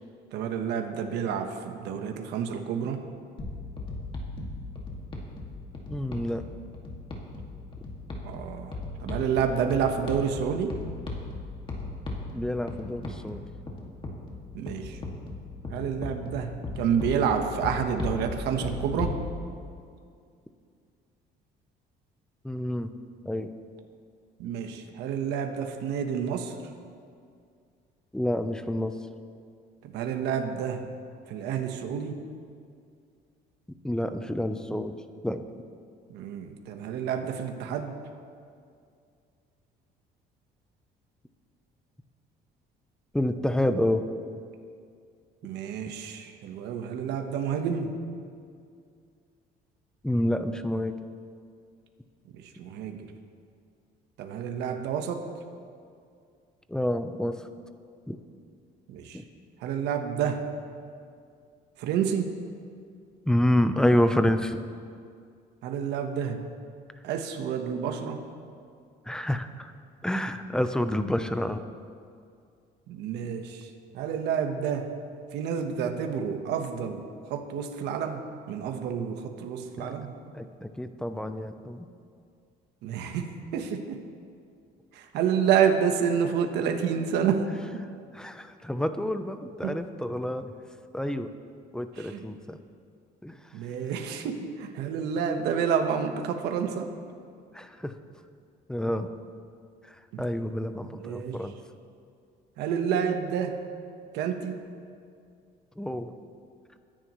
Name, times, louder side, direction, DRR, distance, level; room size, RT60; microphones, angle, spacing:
voice 1, 0.3-3.0 8.2-8.8 9.0-10.7 14.5-15.0 15.7-19.2 24.4-26.6 29.8-30.9 31.3-32.2 36.1-37.9 45.4-47.9 52.3-53.1 54.2-55.3 58.9-59.2 59.6-60.4 61.8-62.3 65.6-66.5 67.0-68.2 72.9-74.9 75.3-77.0 77.3-78.2 78.5-80.1 82.8-84.0 84.9-87.5 89.6-89.8 92.0-92.3 93.5-96.9 100.1-100.3 100.8-101.4 102.6-103.6 104.1-104.6, right 7 dB, 85° right, 5 dB, 1.2 m, -29 dB
sound 1, 3.4-19.2, left 2 dB, 30° left, 2.2 m, -37 dB
voice 2, 5.9-6.4 12.3-13.4 22.4-22.9 23.2-23.5 28.1-28.9 33.8-34.9 35.2-35.4 43.1-44.1 50.0-51.0 56.7-57.5 58.1-58.2 59.1-59.2 63.3-64.6 69.1-69.7 70.0-71.6 79.8-79.9 80.3-81.9 88.1-90.6 90.9-91.3 91.7-92.6 93.2-93.4 97.5-98.0 98.7-99.1 99.8-101.5 105.8-106.2, left 1 dB, 5° left, 9 dB, 0.7 m, -28 dB
23.0 x 10.5 x 3.1 m, 2.3 s
cardioid pair, 110°, 17 cm